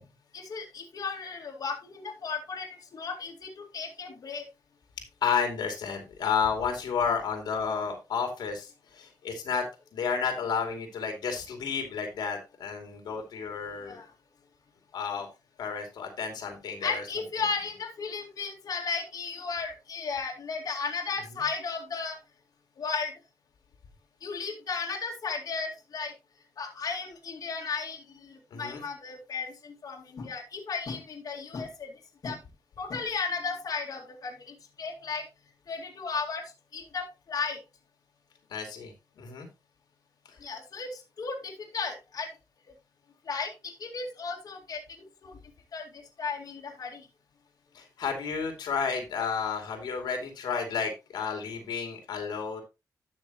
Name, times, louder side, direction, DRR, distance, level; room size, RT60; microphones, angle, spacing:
voice 1, 0.3-4.4 13.8-14.1 16.8-22.2 22.8-23.1 24.2-26.1 26.6-31.9 32.2-32.4 32.8-35.3 35.7-37.6 40.4-42.3 43.3-44.8 45.2-45.4 45.7-47.1, left 5 dB, 60° left, 0 dB, 2.3 m, -35 dB
voice 2, 5.2-9.6 9.9-14.0 14.9-15.3 15.6-17.0 28.5-28.8 38.5-39.5 47.7-52.6, left 6 dB, 85° left, 4 dB, 2.6 m, -31 dB
12.0 x 6.1 x 3.0 m, 0.25 s
cardioid pair, 80°, 7 cm